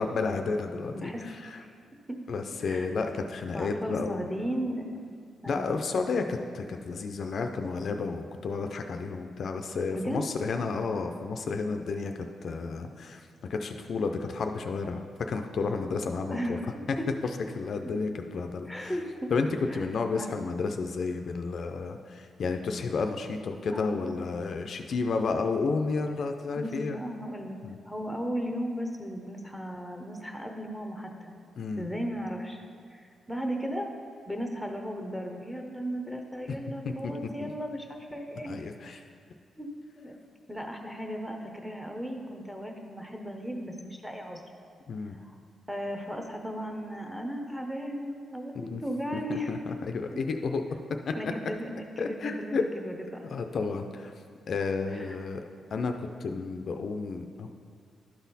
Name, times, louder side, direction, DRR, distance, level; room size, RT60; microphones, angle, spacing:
voice 1, 0.0-1.6 2.3-4.3 5.5-13.2 13.5-16.6 16.9-17.0 17.5-18.9 19.3-19.5 19.7-27.0 27.6-27.8 31.6-31.9 36.5-36.6 36.8-37.5 38.5-39.0 44.9-45.2 48.6-48.8 49.1-50.6 51.1-51.2 52.0-52.7 53.2-54.1 54.5-55.4 55.7-57.5, left 4 dB, 55° left, 5 dB, 0.4 m, -31 dB
voice 2, 0.9-1.2 1.6-1.7 2.1-2.2 2.6-2.9 3.5-5.0 5.4-5.9 9.9-10.2 16.2-16.7 18.7-19.3 19.7-19.8 20.1-20.3 23.7-24.0 26.6-27.6 27.9-31.3 31.8-32.6 32.9-33.9 34.3-38.5 38.8-39.0 39.6-39.7 40.0-40.1 40.5-44.4 45.2-45.3 45.7-49.5 51.2-53.2 54.9-55.2, equal, ahead, 3 dB, 0.8 m, -36 dB
11.5 x 4.1 x 4.1 m, 2.1 s
cardioid pair, 120°, 0 cm